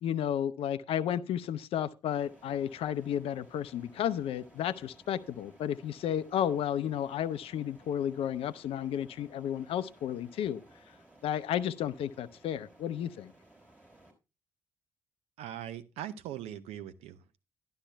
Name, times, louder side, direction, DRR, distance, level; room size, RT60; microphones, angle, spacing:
voice 1, 0.0-10.6 11.2-13.3, left 10 dB, 55° left, 0.5 m, -32 dB
sound 1, 2.1-14.1, right 1 dB, 10° right, 3.7 m, -59 dB
voice 2, 15.4-17.4, right 11 dB, 60° right, 0.6 m, -41 dB
12.5 x 11.5 x 2.2 m
figure-of-eight pair, 45°, 12 cm